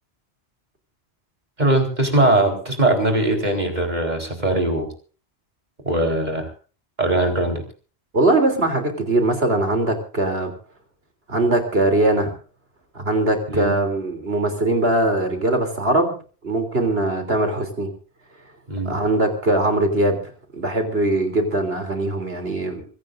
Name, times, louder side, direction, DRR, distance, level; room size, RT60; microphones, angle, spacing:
voice 1, 1.6-4.9 5.8-6.5 7.0-7.6 13.5-13.7 18.7-18.9, right 2 dB, 40° right, 3 dB, 4.5 m, -20 dB
voice 2, 8.1-10.5 11.3-12.3 13.0-16.1 16.4-17.9 18.9-20.2 20.5-22.9, right 2 dB, 70° right, 5 dB, 3.7 m, -21 dB
24.5 x 17.0 x 2.6 m, 0.38 s
omnidirectional pair, 1.1 m